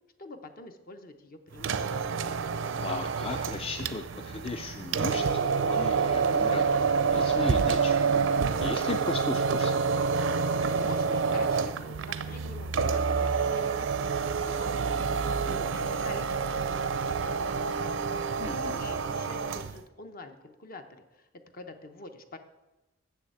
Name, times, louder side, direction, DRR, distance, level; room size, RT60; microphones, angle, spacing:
voice 1, 0.2-2.3 10.8-17.9 18.5-21.3 21.5-22.4, left 2 dB, 50° left, 7 dB, 0.9 m, -46 dB
sound 1, 1.5-19.8, right 5 dB, 80° right, 0.5 m, -28 dB
voice 2, 2.8-5.4 5.7-7.9 8.6-9.7 18.4-18.8, left 3 dB, 30° left, 7 dB, 0.4 m, -36 dB
7.3 x 6.8 x 7.7 m, 1.0 s
head